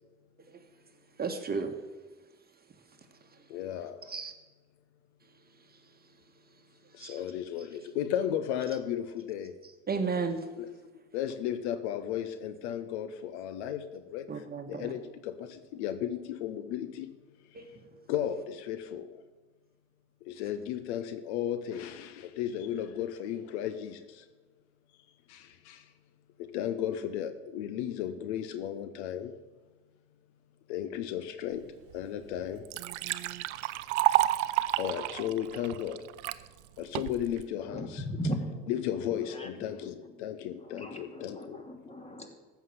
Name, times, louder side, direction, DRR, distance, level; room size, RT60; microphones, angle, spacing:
voice 1, 1.2-1.7 4.1-4.3 7.0-7.1 9.9-10.4 14.3-14.9 17.5-17.6, right 4 dB, 25° right, 6 dB, 1.4 m, -32 dB
voice 2, 3.5-4.2 6.9-9.5 10.6-10.7 11.1-17.2 18.1-19.2 20.2-24.3 25.3-25.9 26.4-29.4 30.7-32.7 34.8-36.0 36.8-38.0 38.7-41.6, left 10 dB, 70° left, 11 dB, 0.9 m, -35 dB
Liquid, 31.9-32.0 32.4-36.4 37.0-37.4, right 16 dB, 75° right, 0.6 m, -30 dB
voice 3, 37.7-38.7 39.3-39.5 40.6-42.3, equal, 20° left, 4 dB, 2.6 m, -37 dB
14.5 x 5.9 x 8.1 m, 1.2 s
hypercardioid pair, 60°, 35 cm